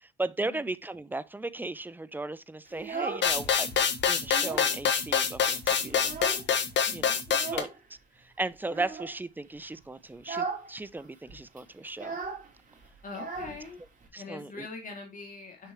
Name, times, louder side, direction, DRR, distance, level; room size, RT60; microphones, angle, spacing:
voice 1, 0.0-6.1 6.9-7.2 7.5-8.0 8.2-12.2 14.1-14.7, right 2 dB, 10° right, 0.6 m, -36 dB
Child speech kid speaking, 2.7-3.7 4.0-4.8 5.1-5.2 5.6-6.7 7.3-7.8 8.6-9.2 9.6-9.8 10.2-10.7 11.0-11.1 11.3-14.1, right 4 dB, 40° right, 2.5 m, -37 dB
sound 1, 3.2-7.6, left 7 dB, 65° left, 1.5 m, -26 dB
voice 2, 6.9-7.2 13.0-13.8 14.2-15.7, left 3 dB, 45° left, 2.6 m, -42 dB
6.6 x 6.2 x 3.1 m
cardioid pair, 90°, 20 cm